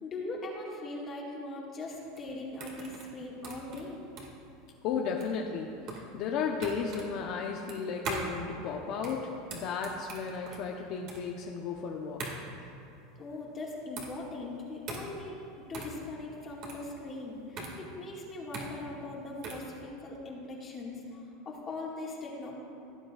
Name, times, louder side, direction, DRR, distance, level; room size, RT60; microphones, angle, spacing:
voice 1, 0.0-4.0 13.2-22.5, left 2 dB, 30° left, -3 dB, 1.8 m, -40 dB
sound 1, 1.9-19.7, right 2 dB, 50° right, 2.0 m, -42 dB
voice 2, 4.8-12.2, left 5 dB, 55° left, 0 dB, 0.8 m, -34 dB
16.5 x 7.8 x 2.4 m, 2.7 s
supercardioid pair, 125°, 0 cm